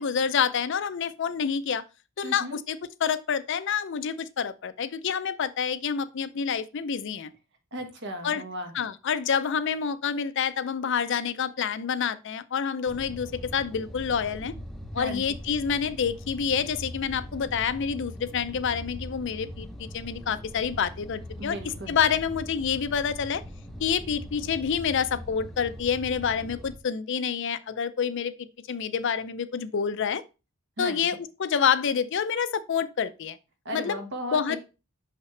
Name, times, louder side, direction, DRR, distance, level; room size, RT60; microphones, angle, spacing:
voice 1, 0.0-1.8 2.2-7.3 8.2-8.4 8.7-14.5 14.9-21.6 21.9-23.4 23.8-30.2 30.8-33.4 33.7-34.0 34.3-34.6, left 7 dB, 60° left, 0.5 m, -28 dB
voice 2, 2.2-2.6 7.7-8.7 14.9-15.2 21.4-22.0 30.8-31.0 33.6-34.6, equal, 55° right, 1.3 m, -35 dB
sound 1, 12.9-26.8, equal, ahead, 0.7 m, -41 dB
5.9 x 5.6 x 3.2 m
head